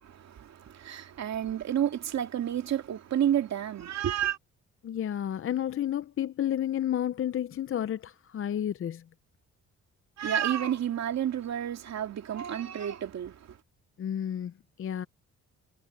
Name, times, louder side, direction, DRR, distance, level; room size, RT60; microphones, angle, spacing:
voice 1, 0.0-4.4 10.2-13.6, right 10 dB, 60° right, 2.5 m, -30 dB
voice 2, 4.8-9.0 14.0-15.1, left 10 dB, 45° left, 0.6 m, -31 dB
cardioid pair, 90°, 30 cm